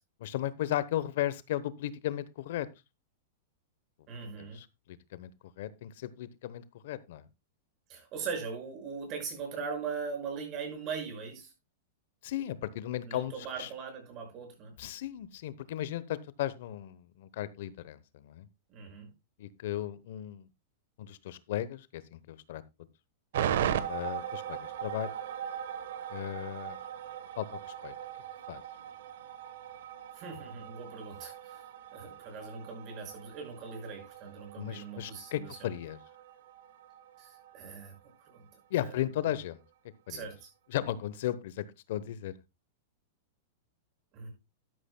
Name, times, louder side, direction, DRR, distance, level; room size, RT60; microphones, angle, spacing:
voice 1, 0.2-2.7 4.4-4.7 5.1-5.3 5.6-7.2 12.2-13.7 14.8-18.5 19.4-20.5 21.0-22.6 23.9-25.1 26.1-26.8 27.4-27.9 28.5-28.6 34.6-36.0 38.7-39.6 40.1-40.3 40.7-42.3, left 12 dB, 65° left, 0.9 m, -35 dB
voice 2, 4.1-4.6 7.9-11.5 13.1-14.7 18.7-19.1 30.1-31.7 31.9-35.7 37.2-37.9 38.3-38.5 38.8-39.0 40.1-40.5 44.1-44.3, right 5 dB, 40° right, 5.9 m, -40 dB
sound 1, 23.3-37.7 37.9-38.0, right 10 dB, 75° right, 1.2 m, -39 dB
12.0 x 11.0 x 2.2 m
hypercardioid pair, 130°, 0 cm